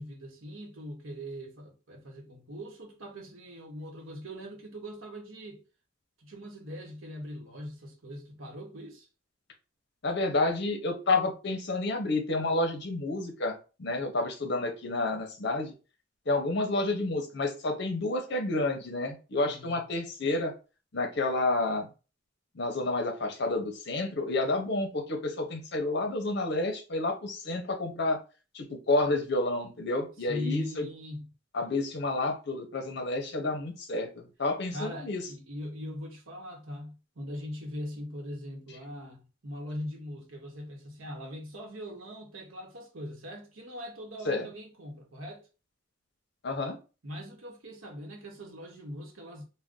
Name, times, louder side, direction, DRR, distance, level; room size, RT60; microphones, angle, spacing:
voice 1, 0.0-5.6 6.2-9.1 19.4-19.8 30.2-31.3 34.7-45.5 47.0-49.4, equal, 85° right, 0.9 m, -41 dB
voice 2, 10.0-15.7 16.3-20.5 20.9-21.9 22.5-28.2 28.5-30.9 31.5-34.1 34.4-35.2 44.2-44.4 46.4-46.8, left 2 dB, 60° left, 0.7 m, -30 dB
2.5 x 2.2 x 3.5 m
head